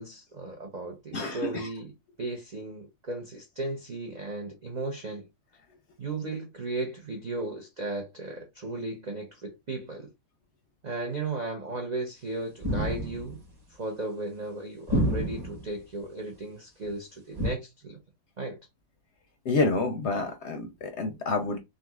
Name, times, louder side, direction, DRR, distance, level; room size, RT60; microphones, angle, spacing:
voice 1, 0.0-1.9 2.2-5.2 6.0-10.1 10.8-13.4 13.7-18.0 18.4-18.6, right 2 dB, 75° right, 0.4 m, -35 dB
voice 2, 1.1-1.7 19.5-21.6, left 3 dB, 60° left, 0.7 m, -28 dB
sound 1, 12.6-13.4 14.9-15.7 17.4-17.5, equal, 20° right, 0.9 m, -28 dB
3.7 x 2.7 x 2.3 m
omnidirectional pair, 1.7 m